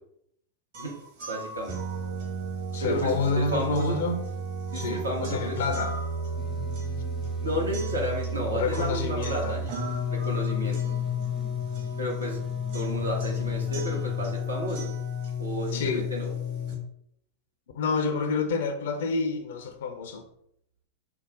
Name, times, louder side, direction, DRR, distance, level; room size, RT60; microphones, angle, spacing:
sound 1, 0.7-16.7, left 2 dB, 50° right, 1.4 m, -32 dB
voice 1, 1.3-1.8 2.8-4.0 4.7-5.6 7.4-9.7 10.1-10.9 12.0-12.4 12.7-14.9 15.4-16.3, equal, 80° right, 1.0 m, -32 dB
voice 2, 2.7-4.2 4.7-5.9 8.5-9.5 15.7-16.1 17.7-20.2, left 4 dB, 60° left, 0.5 m, -28 dB
sound 2, 6.4-14.4, left 2 dB, 10° left, 0.4 m, -45 dB
4.7 x 2.1 x 3.8 m
figure-of-eight pair, 90°, 0 cm